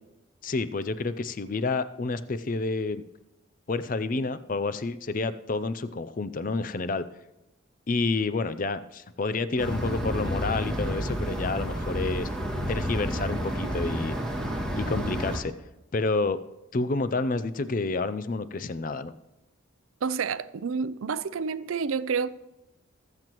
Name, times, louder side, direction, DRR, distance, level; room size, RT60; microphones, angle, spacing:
voice 1, 0.4-3.0 3.7-7.0 7.9-12.3 12.7-14.1 14.8-15.5 15.9-16.4 16.7-19.1, left 3 dB, 40° left, 0.5 m, -29 dB
sound 1, 9.6-15.4, equal, 5° left, 2.0 m, -30 dB
voice 2, 20.0-22.3, right 5 dB, 80° right, 0.5 m, -29 dB
22.5 x 7.8 x 3.0 m
head